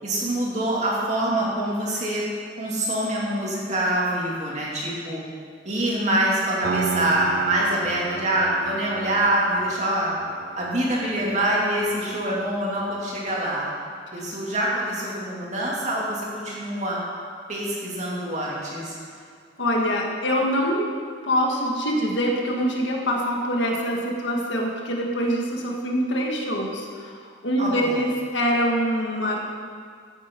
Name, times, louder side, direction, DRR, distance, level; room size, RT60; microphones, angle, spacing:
voice 1, 0.0-2.2 2.6-5.2 5.6-10.1 10.6-13.7 14.1-17.0 17.5-19.0 27.6-28.0, right 1 dB, 35° right, -5 dB, 2.6 m, -25 dB
Piano, 6.6-13.4, right 4 dB, 55° right, 0.4 m, -34 dB
voice 2, 19.6-20.9 21.2-29.4, equal, 75° left, 0 dB, 1.7 m, -24 dB
14.5 x 8.6 x 4.6 m, 2.1 s
head